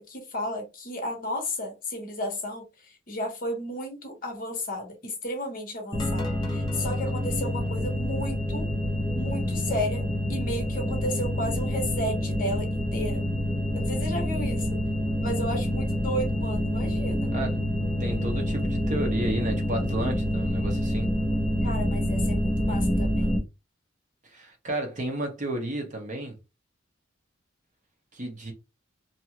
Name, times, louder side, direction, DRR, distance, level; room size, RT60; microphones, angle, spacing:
voice 1, 0.0-8.7 9.1-13.3 13.7-14.8 15.2-17.3 21.6-23.3, equal, 45° left, 0.9 m, -33 dB
sound 1, 5.9-23.4, equal, 20° left, 0.7 m, -27 dB
voice 2, 18.0-21.1 24.2-26.4 28.1-28.5, right 1 dB, 40° right, 0.8 m, -32 dB
2.7 x 2.4 x 2.8 m
head